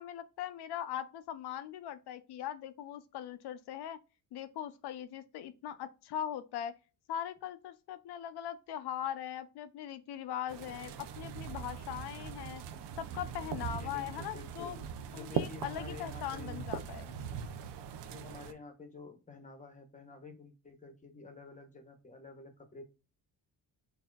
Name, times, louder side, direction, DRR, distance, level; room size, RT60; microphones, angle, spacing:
voice 1, 0.0-4.0 4.3-6.7 7.1-12.6 13.0-14.8 15.1-17.1, left 10 dB, 75° left, 0.7 m, -40 dB
sound 1, 10.5-18.5, right 7 dB, 85° right, 0.7 m, -41 dB
voice 2, 13.6-14.7 15.1-16.6 18.1-22.8, left 4 dB, 20° left, 0.9 m, -50 dB
6.1 x 2.8 x 2.3 m
cardioid pair, 130°, 40 cm